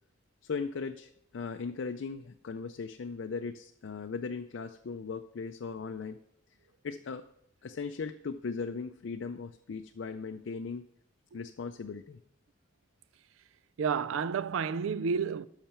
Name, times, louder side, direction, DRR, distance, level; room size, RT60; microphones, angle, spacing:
voice 1, 0.4-6.2 6.8-7.2 7.6-10.8 11.3-12.2, left 5 dB, 70° left, 0.4 m, -38 dB
voice 2, 13.8-15.5, right 6 dB, 80° right, 0.4 m, -30 dB
12.5 x 5.7 x 4.4 m
head